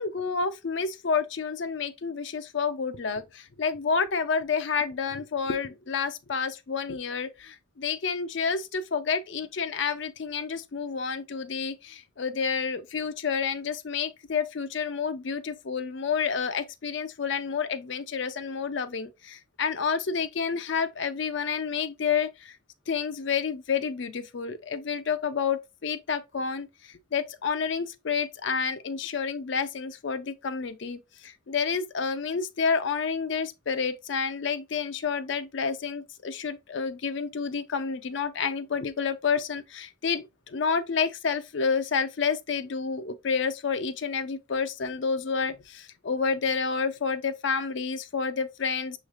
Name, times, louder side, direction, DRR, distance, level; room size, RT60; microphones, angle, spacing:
voice 1, 0.0-22.6 22.9-49.0, left 5 dB, 60° left, 0.5 m, -29 dB
6.3 x 3.2 x 2.4 m
head